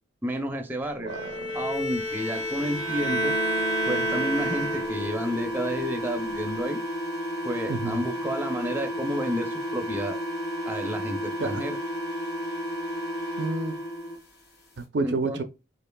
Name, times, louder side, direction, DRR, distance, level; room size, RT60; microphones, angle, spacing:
voice 1, 0.2-1.1 1.5-3.3 3.9-6.8 7.4-10.2 10.7-11.8 15.0-15.4, equal, 10° right, 0.5 m, -31 dB
voice 2, 1.0-1.5 7.7-8.0 11.4-11.6 13.4-13.8 14.8-15.4, right 3 dB, 60° right, 0.4 m, -29 dB
Bowed string instrument, 1.1-5.2, right 1 dB, 85° left, 1.2 m, -29 dB
sound 1, 2.1-14.2, equal, 60° left, 1.7 m, -32 dB
4.5 x 2.8 x 2.2 m
head